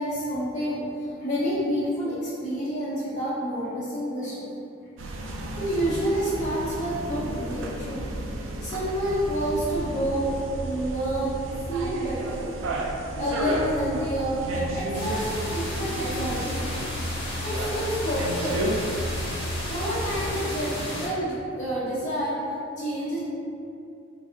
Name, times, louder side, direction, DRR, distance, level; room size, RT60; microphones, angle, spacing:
voice 1, 0.0-4.4 5.6-8.1 8.6-11.4 11.7-12.5 13.1-16.6 17.4-18.6 19.7-22.4 22.8-23.2, equal, 40° left, -12 dB, 0.7 m, -28 dB
sound 1, 5.0-20.4, right 1 dB, 85° right, 0.3 m, -32 dB
sound 2, 14.9-21.1, left 1 dB, 85° left, 1.0 m, -34 dB
2.7 x 2.3 x 3.6 m, 2.5 s
head